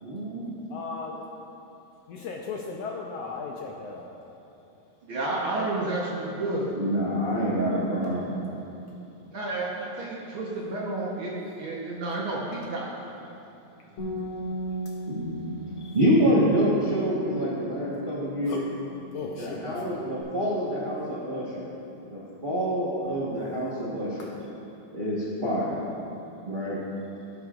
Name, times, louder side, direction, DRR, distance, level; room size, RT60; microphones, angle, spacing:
voice 1, 0.0-0.5 6.8-8.3 15.1-15.5 15.9-18.6 19.4-21.7 22.1-24.3 24.9-25.8 26.4-26.8, equal, 80° right, -8 dB, 0.4 m, -27 dB
voice 2, 0.7-1.2 2.1-4.1 18.4-18.7 19.1-20.0 24.2-24.3, left 4 dB, 75° left, 0 dB, 1.5 m, -36 dB
voice 3, 5.0-6.7 9.3-11.3 11.6-12.9, right 2 dB, 60° right, -4 dB, 1.4 m, -30 dB
Bass guitar, 14.0-20.2, right 1 dB, 50° left, 2.5 m, -38 dB
16.5 x 8.0 x 2.5 m, 2.8 s
omnidirectional pair, 3.4 m